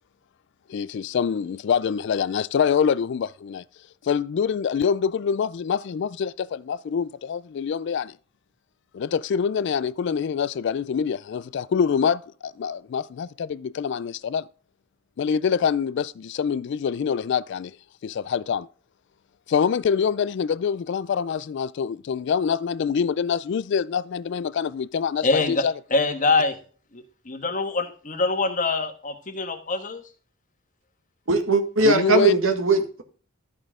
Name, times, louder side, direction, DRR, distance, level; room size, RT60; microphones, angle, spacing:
voice 1, 0.7-3.6 4.0-8.2 8.9-14.5 15.2-17.8 18.0-18.7 19.5-25.7 31.8-32.4, left 7 dB, 60° left, 0.3 m, -25 dB
voice 2, 25.2-26.6 26.9-30.0, left 3 dB, 40° left, 1.4 m, -24 dB
voice 3, 31.3-33.0, right 3 dB, 75° right, 1.7 m, -20 dB
13.0 x 5.4 x 3.6 m
head